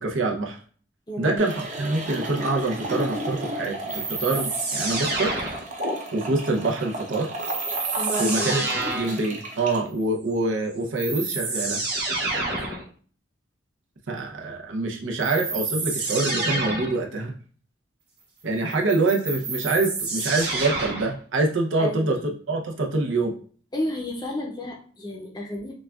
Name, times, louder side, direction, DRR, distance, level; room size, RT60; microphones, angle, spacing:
voice 1, 0.0-0.6 1.2-5.3 6.1-7.3 8.2-8.6 8.9-11.8 14.1-17.3 18.4-22.2 22.5-23.3, right 2 dB, 75° right, 1 dB, 0.7 m, -25 dB
voice 2, 1.1-1.4 1.8-2.0 8.0-8.9 12.3-12.8 21.8-22.2 23.7-25.7, equal, 20° left, 0 dB, 0.6 m, -32 dB
sound 1, 1.4-9.8, right 1 dB, 40° right, 0.7 m, -34 dB
sound 2, 3.9-5.9 7.4-9.2 10.5-10.6 11.0-12.8 15.2-17.0 18.7-21.1, right 3 dB, 55° right, 1.4 m, -28 dB
6.1 x 2.3 x 2.3 m, 0.43 s
head